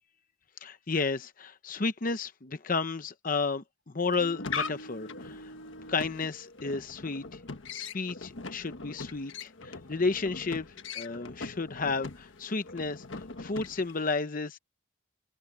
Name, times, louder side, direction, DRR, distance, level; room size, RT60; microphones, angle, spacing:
voice 1, 0.6-3.6 3.9-5.5 5.9-7.4 7.7-10.7 10.9-14.6, left 4 dB, 45° left, 0.8 m, -32 dB
sound 1, 4.0-14.1, left 4 dB, 70° left, 1.5 m, -41 dB
open air
head